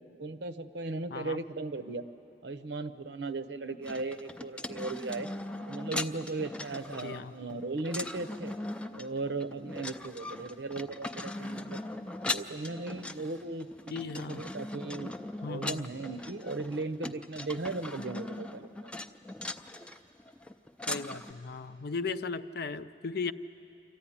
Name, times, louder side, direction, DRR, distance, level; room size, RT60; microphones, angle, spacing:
voice 1, 0.2-2.1 2.4-5.3 5.7-8.5 8.9-11.8 12.3-15.1 15.5-18.9, right 3 dB, 75° right, 12 dB, 0.8 m, -37 dB
voice 2, 1.1-1.4 6.9-7.3 13.9-14.4 15.4-15.9 20.9-23.3, left 4 dB, 60° left, 12 dB, 0.6 m, -37 dB
sound 1, 3.8-21.3, left 2 dB, 5° left, 0.5 m, -40 dB
26.0 x 14.0 x 10.0 m, 2.8 s
head